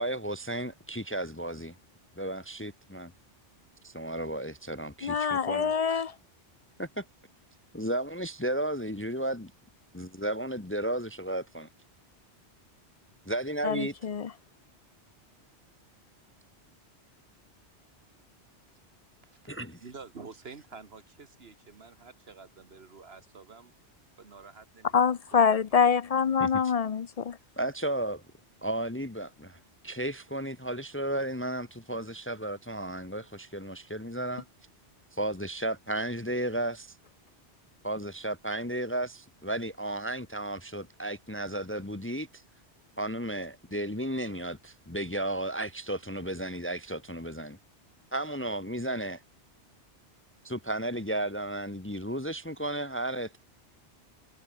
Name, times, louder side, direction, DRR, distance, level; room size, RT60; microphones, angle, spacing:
voice 1, 0.0-1.8 2.2-3.1 3.8-5.7 6.8-7.0 7.7-9.5 9.9-11.7 13.3-13.9 19.5-19.8 26.4-26.5 27.6-28.2 28.6-34.4 35.1-36.9 37.8-42.4 43.0-47.6 48.1-49.2 50.4-53.4, right 1 dB, 10° left, 1.0 m, -33 dB
voice 2, 5.0-6.1 13.6-14.3 24.9-27.4, left 6 dB, 45° left, 0.5 m, -25 dB
voice 3, 19.8-23.7 24.2-25.6, right 4 dB, 60° right, 2.0 m, -49 dB
omnidirectional pair, 1.2 m